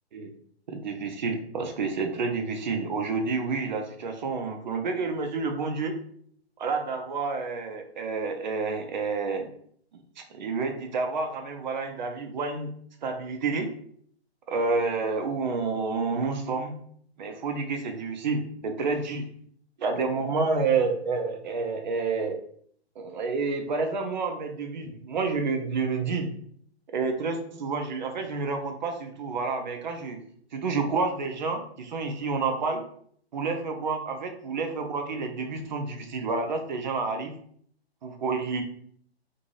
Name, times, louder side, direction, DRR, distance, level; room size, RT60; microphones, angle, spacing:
voice 1, 0.7-5.9 6.6-9.5 10.3-12.7 13.0-13.7 14.5-16.8 17.2-19.2 19.8-22.4 23.0-26.3 26.9-30.2 30.5-32.8 33.3-37.3 38.0-38.6, right 4 dB, 45° right, 5 dB, 0.5 m, -29 dB
2.6 x 2.6 x 3.0 m, 0.63 s
figure-of-eight pair, 135°, 32 cm